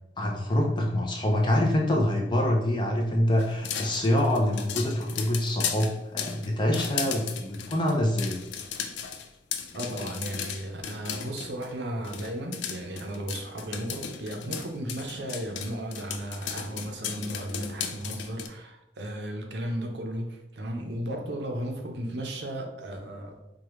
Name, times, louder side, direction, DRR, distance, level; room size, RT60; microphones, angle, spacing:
voice 1, 0.2-8.4, left 1 dB, 25° left, 0 dB, 0.5 m, -25 dB
sound 1, 3.4-11.7 12.0-18.5, left 8 dB, 75° left, 0.4 m, -36 dB
voice 2, 9.7-23.4, right 1 dB, 65° right, 2 dB, 0.6 m, -35 dB
4.8 x 2.3 x 3.1 m, 0.88 s
head